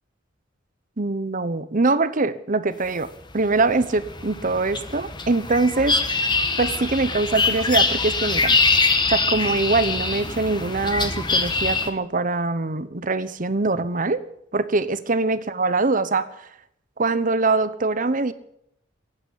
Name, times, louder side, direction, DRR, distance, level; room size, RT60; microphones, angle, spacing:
voice 1, 1.0-3.1 3.3-6.0 6.6-8.6 9.1-14.2 14.5-16.5 17.0-18.3, right 3 dB, 45° right, 14 dB, 1.0 m, -23 dB
sound 1, 3.1-11.9, left 4 dB, 25° left, 1.4 m, -23 dB
16.0 x 9.0 x 9.7 m, 0.75 s
head